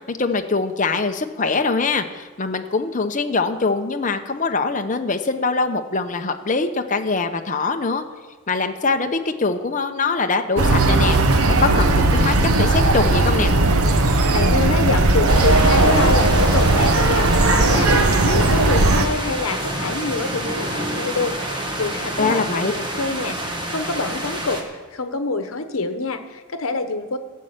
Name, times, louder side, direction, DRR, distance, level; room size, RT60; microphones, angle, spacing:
voice 1, 0.1-8.0 8.5-11.2 11.6-13.5 22.2-22.7, left 4 dB, 35° left, 6 dB, 0.8 m, -23 dB
sound 1, 10.6-19.1, right 2 dB, 85° right, 1.0 m, -17 dB
voice 2, 14.3-17.9 18.2-24.6 24.9-27.2, left 3 dB, 75° left, 8 dB, 1.1 m, -26 dB
sound 2, 15.3-24.6, equal, 20° right, 1.4 m, -27 dB
13.0 x 7.6 x 8.2 m, 1.3 s
head